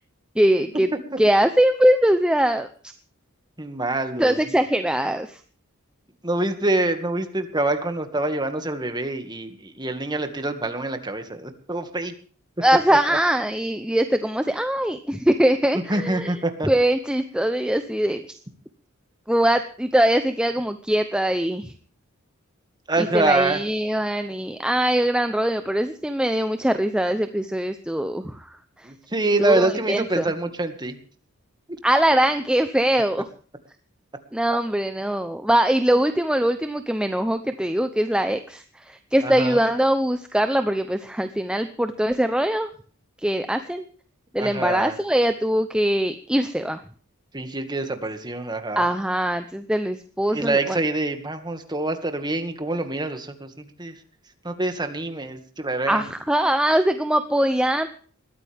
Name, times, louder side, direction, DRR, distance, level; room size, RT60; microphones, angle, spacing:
voice 1, 0.4-0.9 1.2-2.7 4.2-5.4 12.6-16.3 16.7-18.2 19.3-21.7 23.0-28.5 28.8-28.9 29.4-30.3 31.8-33.3 34.3-42.7 43.2-43.9 44.3-46.8 48.8-50.8 55.9-57.9, right 1 dB, 5° right, 8 dB, 0.8 m, -22 dB
voice 2, 3.6-4.4 6.2-12.1 15.7-16.7 22.9-23.6 28.8-31.0 39.2-39.6 44.4-45.0 47.3-48.9 50.3-53.9 54.4-56.1, right 2 dB, 20° right, 7 dB, 2.1 m, -25 dB
21.0 x 14.5 x 3.6 m, 0.43 s
head